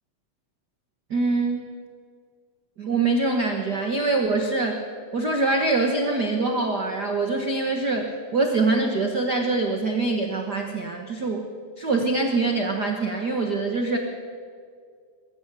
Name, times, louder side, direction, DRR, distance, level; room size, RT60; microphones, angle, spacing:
voice 1, 1.1-1.7 2.8-4.8 5.1-11.4 11.8-14.0, right 3 dB, 85° right, 4 dB, 0.9 m, -24 dB
21.5 x 14.5 x 8.2 m, 2.1 s
omnidirectional pair, 4.1 m